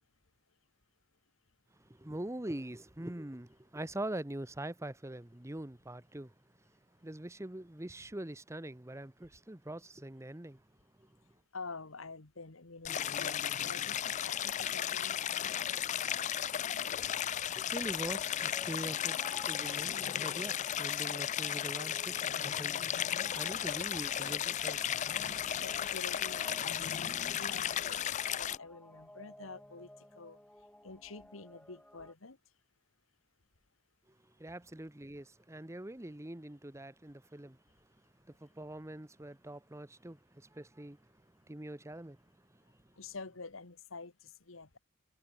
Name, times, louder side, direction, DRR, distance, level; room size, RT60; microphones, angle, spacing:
voice 1, 2.0-6.3 7.0-10.6 11.0-11.1 17.5-19.2 19.5-22.8 23.3-24.9 25.2-25.4 34.4-37.6 38.3-41.1 41.5-42.2 42.5-42.6, right 1 dB, 15° right, 1.0 m, -43 dB
voice 2, 11.5-15.6 25.6-29.9 30.2-30.4 30.8-32.4 43.0-44.8, left 3 dB, 75° left, 1.7 m, -48 dB
Stream, 12.9-28.6, left 10 dB, 35° left, 0.4 m, -35 dB
sound 1, 18.0-32.1, left 1 dB, 5° left, 1.9 m, -55 dB
Rain, 23.3-28.3, left 7 dB, 60° left, 2.2 m, -51 dB
head